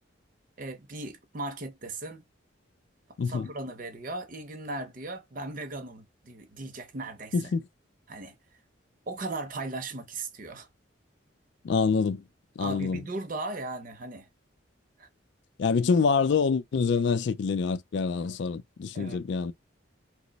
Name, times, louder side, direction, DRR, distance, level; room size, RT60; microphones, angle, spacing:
voice 1, 0.6-2.2 3.2-7.5 8.1-8.3 9.1-10.7 12.6-14.3 15.0-15.1 18.9-19.2, right 2 dB, 40° right, 0.6 m, -37 dB
voice 2, 3.2-3.5 7.3-7.6 11.6-12.2 12.6-13.0 15.6-19.5, left 5 dB, 60° left, 0.3 m, -26 dB
2.9 x 2.1 x 3.9 m
head